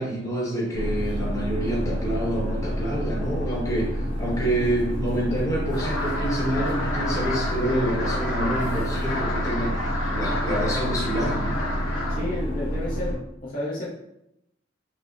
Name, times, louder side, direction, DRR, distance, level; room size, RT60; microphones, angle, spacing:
voice 1, 0.0-9.8 10.1-11.6, right 1 dB, 15° left, -5 dB, 0.9 m, -27 dB
sound 1, 0.7-13.2, equal, 60° right, 1.1 m, -29 dB
sound 2, 5.7-12.2, left 1 dB, 85° left, 0.9 m, -31 dB
voice 2, 12.1-13.9, left 1 dB, 45° left, -6 dB, 0.6 m, -31 dB
4.9 x 2.1 x 2.4 m, 0.81 s
head